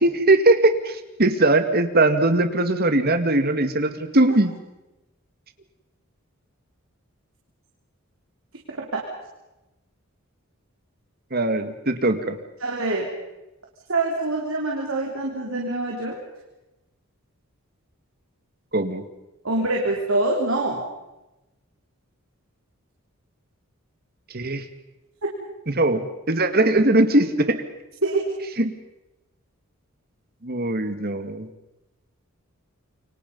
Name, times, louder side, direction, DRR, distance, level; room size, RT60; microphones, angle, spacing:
voice 1, 0.0-4.5 11.3-12.4 18.7-19.0 24.3-24.6 25.7-27.6 28.6-28.7 30.4-31.5, right 2 dB, 45° right, 8 dB, 2.0 m, -20 dB
voice 2, 12.6-13.1 13.9-16.2 19.4-20.9 28.0-28.2, right 2 dB, 65° right, -1 dB, 3.7 m, -24 dB
28.5 x 24.5 x 5.4 m, 0.98 s
head